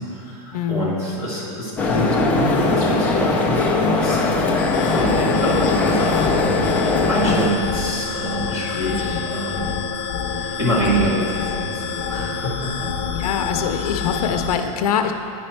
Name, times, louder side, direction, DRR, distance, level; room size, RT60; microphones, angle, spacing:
voice 1, 0.0-4.3 4.9-9.8 10.2-12.9 14.1-14.2, right 1 dB, 15° right, -6 dB, 1.6 m, -26 dB
voice 2, 0.5-0.9 13.1-15.1, left 7 dB, 90° left, 5 dB, 0.6 m, -23 dB
sound 1, 1.8-7.5, left 3 dB, 10° left, 0.3 m, -20 dB
sound 2, 4.6-14.6, left 6 dB, 30° left, 0.7 m, -27 dB
9.1 x 5.2 x 4.4 m, 2.9 s
supercardioid pair, 170°, 19 cm